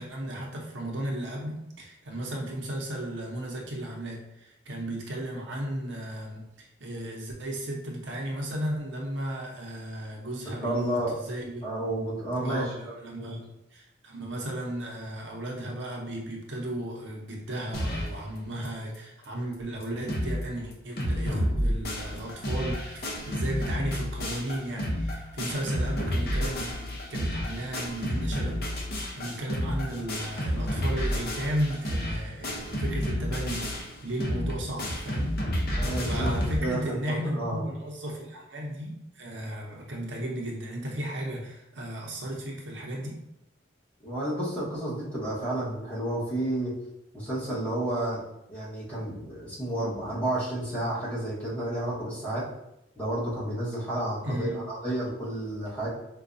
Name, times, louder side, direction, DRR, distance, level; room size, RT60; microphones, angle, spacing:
voice 1, 0.0-11.6 12.4-28.6 29.1-35.3 36.0-43.2 54.2-54.6, right 1 dB, 80° right, -1 dB, 0.7 m, -35 dB
voice 2, 10.4-11.2 11.6-13.3 35.7-37.6 44.0-46.7 47.1-48.2 48.5-52.4 52.9-55.9, right 1 dB, 10° left, -9 dB, 1.2 m, -31 dB
sound 1, 17.7-18.2 18.6-18.7 18.9-19.0 19.5-19.6 19.8-20.4 20.7-36.6, equal, 55° left, 0.7 m, -30 dB
4.6 x 2.2 x 2.6 m, 0.85 s
head